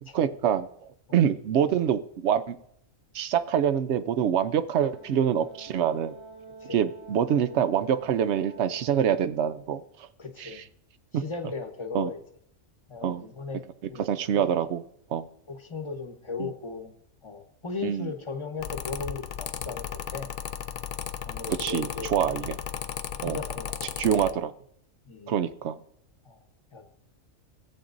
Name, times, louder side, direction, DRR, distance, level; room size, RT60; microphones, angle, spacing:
voice 1, 0.1-0.7 1.1-2.6 3.1-6.1 6.7-9.8 10.4-10.6 11.1-11.2 11.9-12.1 13.0-13.2 14.0-14.8 15.1-15.3 16.4-16.5 17.8-18.1 21.6-22.6 23.2-23.4 24.0-24.5 25.3-25.8, right 9 dB, 65° right, 12 dB, 0.8 m, -25 dB
Brass instrument, 4.8-9.0, right 3 dB, 10° right, 1.0 m, -47 dB
voice 2, 10.2-10.6 11.1-12.2 12.9-13.6 13.9-14.1 15.5-16.9 17.2-20.3 21.2-22.1 23.2-24.2 25.1-25.3 26.2-26.4 26.7-26.9, left 4 dB, 25° left, 5 dB, 1.0 m, -37 dB
Mechanical fan, 18.6-24.3, left 8 dB, 65° left, 0.4 m, -35 dB
17.0 x 8.5 x 2.6 m, 0.69 s
omnidirectional pair, 1.4 m